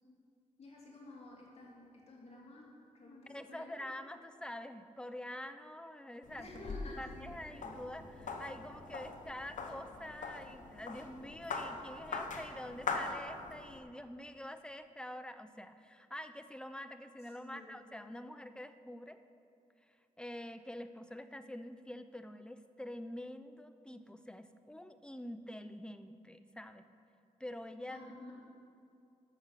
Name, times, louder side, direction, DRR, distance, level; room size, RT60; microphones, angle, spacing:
voice 1, 0.6-3.9 6.4-7.7 17.2-17.7 27.9-28.3, left 2 dB, 50° left, -3 dB, 3.1 m, -52 dB
voice 2, 3.3-6.5 7.0-19.2 20.2-26.8 27.4-28.1, left 1 dB, 5° left, 10 dB, 0.6 m, -46 dB
sound 1, 6.2-13.8, left 4 dB, 75° left, 1.0 m, -42 dB
11.5 x 6.5 x 7.5 m, 2.6 s
cardioid pair, 75°, 13 cm